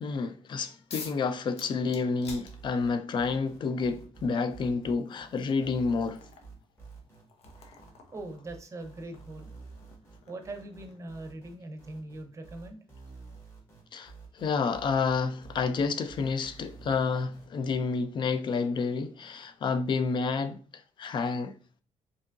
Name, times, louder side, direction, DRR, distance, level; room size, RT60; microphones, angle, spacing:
voice 1, 0.0-6.2 13.9-20.6 21.0-21.5, left 4 dB, 45° left, 0.4 m, -29 dB
sound 1, 0.9-1.2 1.6-3.1 4.2-4.3 4.8-11.5, left 5 dB, 70° left, 0.8 m, -49 dB
sound 2, 2.4-17.8, right 4 dB, 25° left, 1.6 m, -50 dB
voice 2, 8.1-9.5 10.3-12.8, right 2 dB, 25° right, 0.7 m, -41 dB
4.9 x 2.8 x 2.6 m
cardioid pair, 145°, 11 cm